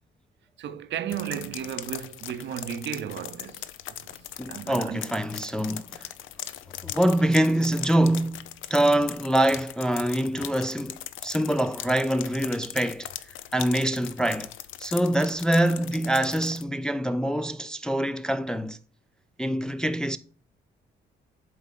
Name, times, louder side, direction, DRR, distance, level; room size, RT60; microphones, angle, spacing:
voice 1, 0.6-5.1, right 9 dB, 65° right, 0.6 m, -35 dB
sound 1, 1.1-16.6, left 12 dB, 85° left, 0.5 m, -40 dB
voice 2, 4.4-6.1 6.8-13.1 13.5-14.5 14.8-18.8 19.4-20.2, right 1 dB, 5° left, 0.3 m, -25 dB
7.6 x 4.1 x 3.6 m
cardioid pair, 90°, 20 cm